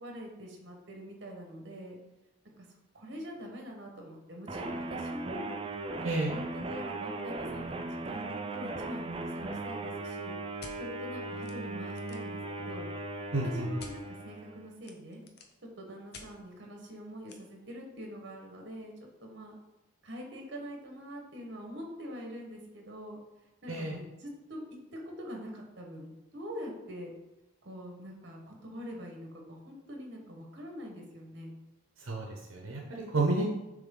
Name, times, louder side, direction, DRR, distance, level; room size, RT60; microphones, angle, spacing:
voice 1, 0.0-2.0 2.4-2.5 2.9-5.6 6.0-10.3 10.8-12.9 13.4-15.2 15.6-18.9 19.2-19.6 20.0-23.2 23.6-24.6 25.0-27.1 27.6-31.5, equal, 55° right, 1 dB, 1.3 m, -44 dB
sound 1, 4.5-14.7, right 2 dB, 25° right, 0.4 m, -38 dB
sound 2, 10.6-10.8 11.4-11.5 11.9-12.3 13.8-14.0 14.8-15.6 16.1-16.3 17.3-17.4, left 4 dB, 50° left, 0.7 m, -48 dB
voice 2, 13.3-13.7 23.7-24.0 32.0-33.4, right 2 dB, 80° right, -1 dB, 0.9 m, -31 dB
7.2 x 3.4 x 3.8 m, 0.99 s
head